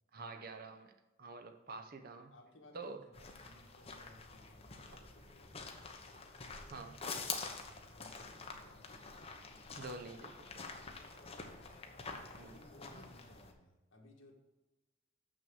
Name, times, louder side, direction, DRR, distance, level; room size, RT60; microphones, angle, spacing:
voice 1, 0.1-0.9 1.2-2.3 2.7-3.0 5.9-6.0 6.7-7.0 9.8-10.4 12.4-12.6, right 3 dB, 50° right, 8 dB, 0.8 m, -47 dB
voice 2, 2.2-7.1 7.9-9.7 10.5-11.6 12.3-14.3, left 1 dB, 65° left, 1 dB, 1.7 m, -62 dB
sound 1, 3.1-13.5, left 4 dB, 30° left, 0.9 m, -47 dB
6.8 x 6.2 x 6.2 m, 1.1 s
head